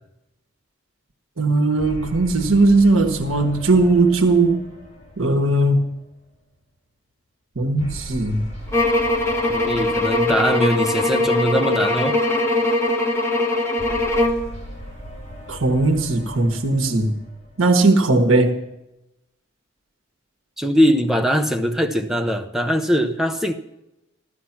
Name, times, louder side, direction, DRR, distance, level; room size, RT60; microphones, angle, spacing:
voice 1, 1.4-4.6 5.2-5.8 7.5-8.4 15.5-17.2 17.6-18.6, right 2 dB, 85° right, 1.5 m, -18 dB
sound 1, 1.8-6.4 7.8-12.2 13.8-18.3, equal, 35° left, 6.4 m, -39 dB
sound 2, 8.7-14.5, left 2 dB, 15° left, 1.4 m, -21 dB
voice 2, 9.5-12.2 20.6-23.5, equal, ahead, 0.8 m, -21 dB
15.5 x 13.0 x 6.0 m
head